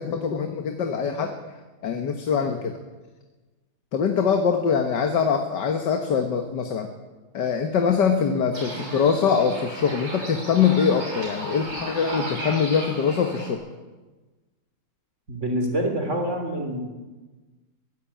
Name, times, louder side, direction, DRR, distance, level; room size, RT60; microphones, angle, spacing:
voice 1, 0.0-1.3 1.8-2.8 3.9-6.9 7.3-13.6, left 6 dB, 90° left, 5 dB, 2.1 m, -23 dB
sound 1, 8.5-13.5, right 1 dB, 60° right, 8.2 m, -35 dB
voice 2, 15.3-16.8, right 1 dB, 40° right, 3 dB, 3.7 m, -26 dB
22.0 x 15.0 x 8.7 m, 1.2 s
omnidirectional pair, 1.8 m